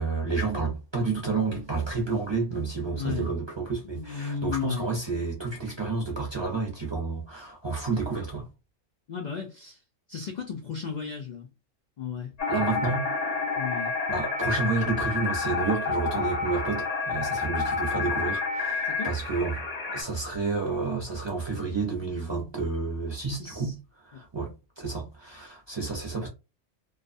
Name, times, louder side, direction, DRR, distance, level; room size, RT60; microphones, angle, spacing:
voice 1, 0.0-8.5 12.5-13.1 14.1-19.6 19.9-26.3, right 4 dB, 30° right, 0.5 m, -30 dB
voice 2, 2.9-3.3 3.8-4.9 9.1-9.8 10.1-11.5 12.0-12.3 13.6-13.9 18.8-19.1 23.3-23.7 24.1-24.2, left 7 dB, 80° left, 0.4 m, -34 dB
sound 1, 12.4-20.0, left 4 dB, 40° left, 0.6 m, -29 dB
2.4 x 2.3 x 2.5 m
omnidirectional pair, 1.3 m